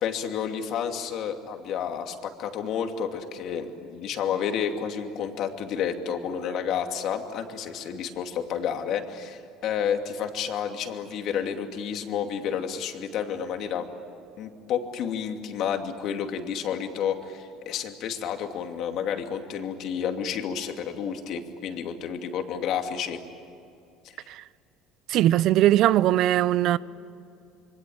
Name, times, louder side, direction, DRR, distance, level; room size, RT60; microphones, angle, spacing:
voice 1, 0.0-13.9 14.4-23.2 24.1-24.3, left 8 dB, 55° left, 2.6 m, -30 dB
voice 2, 25.1-26.8, right 13 dB, 60° right, 0.6 m, -20 dB
26.5 x 23.5 x 8.9 m
cardioid pair, 130°, 0 cm